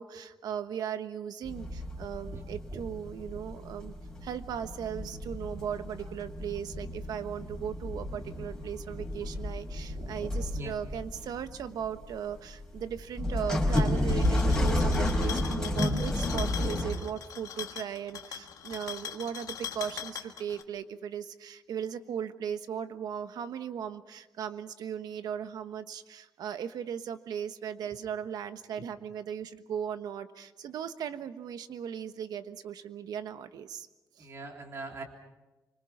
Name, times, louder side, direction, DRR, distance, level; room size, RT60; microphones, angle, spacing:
voice 1, 0.0-3.9 4.2-33.9 34.2-34.3, right 8 dB, 75° right, 10 dB, 1.3 m, -37 dB
sound 1, 1.4-16.9, left 1 dB, 10° left, 4.4 m, -31 dB
voice 2, 10.0-10.8 20.7-20.8 34.2-35.0, right 2 dB, 40° right, 2 dB, 3.4 m, -42 dB
sound 2, 13.6-20.6, left 8 dB, 60° left, 1.6 m, -41 dB
25.5 x 25.0 x 5.9 m, 1.1 s
wide cardioid pair, 175°, 7 cm